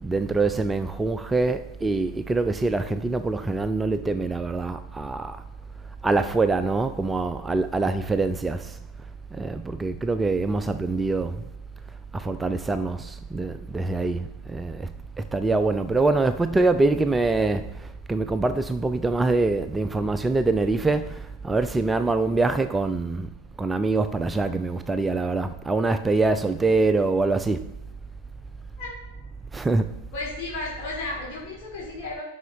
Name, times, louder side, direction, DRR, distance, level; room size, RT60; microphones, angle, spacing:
voice 1, 0.0-5.4 6.0-8.7 9.3-11.4 12.1-14.9 15.3-17.7 18.1-23.3 23.6-27.7 29.5-29.9, right 3 dB, 10° right, 0.3 m, -24 dB
voice 2, 30.1-32.2, left 2 dB, 45° left, 2.5 m, -33 dB
11.5 x 5.6 x 3.0 m
figure-of-eight pair, 90°, 0 cm